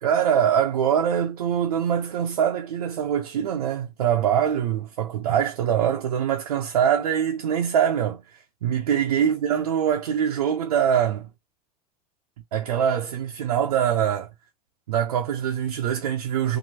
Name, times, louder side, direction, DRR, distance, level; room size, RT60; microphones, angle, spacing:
voice 1, 0.0-8.2 8.6-11.3 12.5-14.3 14.9-16.6, right 9 dB, 90° right, 0.6 m, -23 dB
2.8 x 2.6 x 2.7 m
hypercardioid pair, 100°, 19 cm